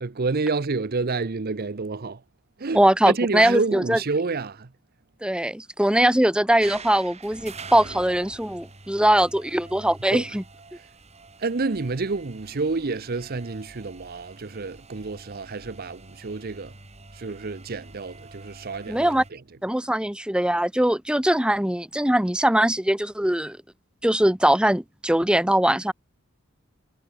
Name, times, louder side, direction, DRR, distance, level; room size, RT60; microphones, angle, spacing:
voice 1, 0.0-2.2 2.6-4.7 10.1-10.4 11.4-16.7 17.1-19.6, right 3 dB, 45° right, 0.7 m, -29 dB
voice 2, 2.7-4.0 5.2-10.4 18.9-19.2 19.6-23.6 24.0-25.9, right 1 dB, 5° right, 1.2 m, -21 dB
sound 1, 6.6-19.3, right 3 dB, 30° right, 5.2 m, -45 dB
head